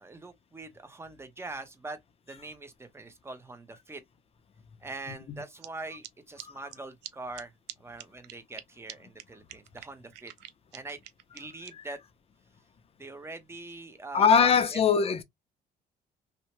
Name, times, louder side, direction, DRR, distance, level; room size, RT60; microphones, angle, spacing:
voice 1, 0.0-2.0 2.3-4.0 4.8-7.5 7.8-10.3 10.7-11.0 11.3-12.0 13.0-14.8, right 2 dB, 15° right, 0.7 m, -43 dB
sound 1, 5.6-5.7 6.0-6.1 6.4-6.5 6.7-6.8 7.0-7.1 7.3-7.4 7.7-7.8 8.0-8.6 8.9-9.0 9.2-9.3 9.5-11.7, right 14 dB, 80° right, 0.4 m, -43 dB
voice 2, 14.1-15.2, left 6 dB, 35° left, 0.5 m, -21 dB
2.8 x 2.1 x 2.9 m
cardioid pair, 110°, 17 cm